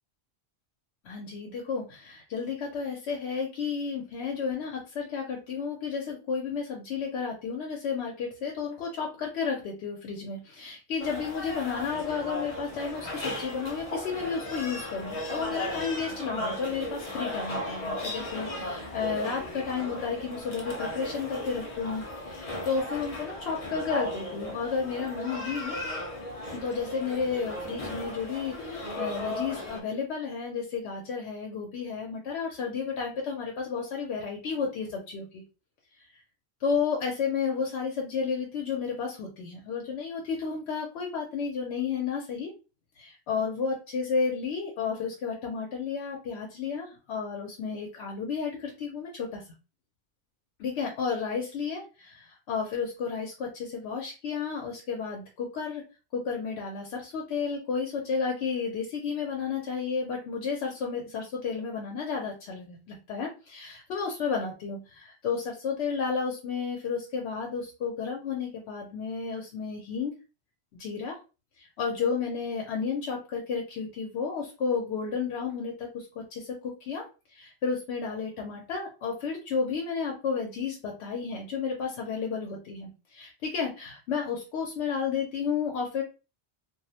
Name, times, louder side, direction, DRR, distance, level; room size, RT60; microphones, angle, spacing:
voice 1, 1.0-25.8 26.5-35.4 36.1-36.2 36.6-42.5 43.0-49.4 50.6-55.8 56.1-70.1 70.7-71.2 71.6-77.0 77.3-86.0, left 5 dB, 90° left, 0 dB, 0.8 m, -32 dB
sound 1, 11.0-29.8, left 1 dB, 45° left, 0.6 m, -36 dB
2.3 x 2.0 x 2.7 m, 0.31 s
omnidirectional pair, 1.1 m